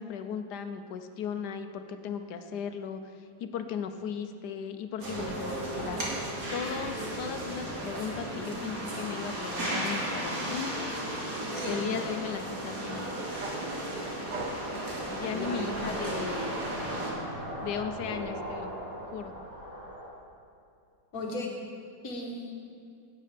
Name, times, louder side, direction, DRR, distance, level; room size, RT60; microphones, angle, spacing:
voice 1, 0.0-3.0 3.4-6.0 6.5-10.9 11.7-13.1 15.1-16.6 17.6-18.7 19.1-19.3, left 7 dB, 75° left, 8 dB, 1.2 m, -36 dB
sound 1, 5.0-17.1, right 1 dB, 55° right, 2.3 m, -35 dB
sound 2, 11.8-20.1, equal, 20° right, 2.1 m, -40 dB
sound 3, 13.4-16.0 16.4-18.4, right 3 dB, 80° right, 1.7 m, -42 dB
voice 2, 15.2-16.0 21.1-21.5 22.0-22.6, left 2 dB, 60° left, 0 dB, 1.6 m, -36 dB
16.5 x 8.4 x 3.4 m, 2.5 s
omnidirectional pair, 1.8 m